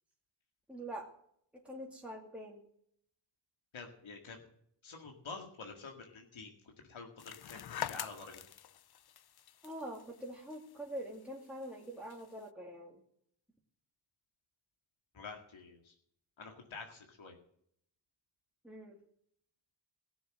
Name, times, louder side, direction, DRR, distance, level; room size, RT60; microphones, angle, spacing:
voice 1, 0.7-1.1 1.5-2.6 9.6-13.0 18.6-19.0, right 1 dB, 5° right, -2 dB, 2.3 m, -45 dB
voice 2, 3.7-4.4 4.8-8.4 15.1-16.0 16.4-17.4, left 4 dB, 90° left, 2 dB, 2.1 m, -48 dB
sound 1, 7.2-12.4, left 10 dB, 55° left, 0.6 m, -46 dB
17.0 x 7.0 x 7.7 m, 0.68 s
wide cardioid pair, 90°, 46 cm